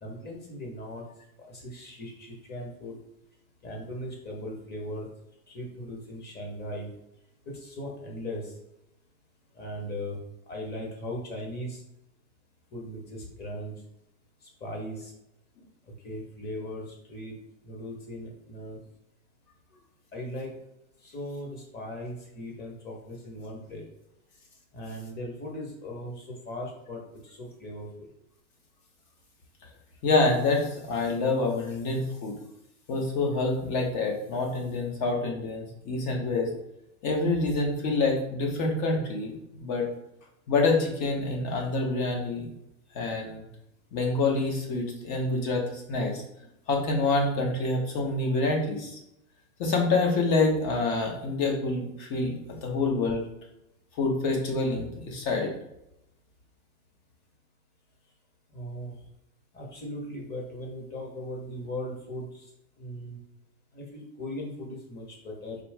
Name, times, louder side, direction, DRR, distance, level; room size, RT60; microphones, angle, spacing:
voice 1, 0.0-1.0 1.5-3.0 3.6-5.1 5.5-6.9 7.4-8.5 9.5-10.2 10.5-11.8 12.7-13.7 14.6-15.1 16.0-17.4 17.6-18.8 20.1-20.5 21.0-23.9 24.7-28.0 58.5-58.9 59.5-62.5 62.8-63.2 63.7-65.6, left 1 dB, 20° left, 0 dB, 1.4 m, -38 dB
voice 2, 30.0-32.3 32.9-36.5 37.0-39.9 40.5-42.4 42.9-43.4 43.9-46.2 46.7-49.0 49.6-53.3 54.0-55.5, left 3 dB, 45° left, 1 dB, 1.4 m, -27 dB
4.4 x 3.2 x 3.6 m, 0.83 s
hypercardioid pair, 125°, 43 cm